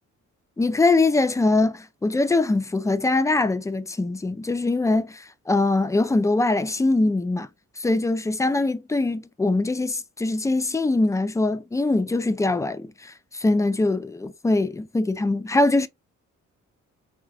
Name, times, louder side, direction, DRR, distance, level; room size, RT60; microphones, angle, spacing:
voice 1, 0.6-7.5 7.8-15.9, left 2 dB, 10° left, 0.3 m, -22 dB
4.6 x 2.2 x 3.7 m
cardioid pair, 140°, 30 cm